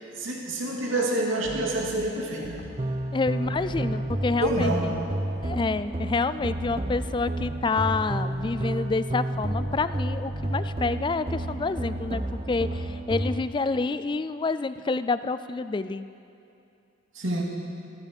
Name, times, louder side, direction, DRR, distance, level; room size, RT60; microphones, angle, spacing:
voice 1, 0.1-2.6 4.4-5.0 17.1-17.4, right 1 dB, 85° right, -2 dB, 2.5 m, -27 dB
sound 1, 1.4-3.0 3.4-5.9 6.4-8.9 9.3-13.1, equal, 60° left, 2.1 m, -42 dB
sound 2, 2.8-13.4, right 1 dB, 30° right, 0.7 m, -31 dB
voice 2, 3.1-5.0 5.4-16.0, left 3 dB, 25° left, 13 dB, 0.3 m, -28 dB
14.5 x 14.5 x 5.3 m, 2.7 s
head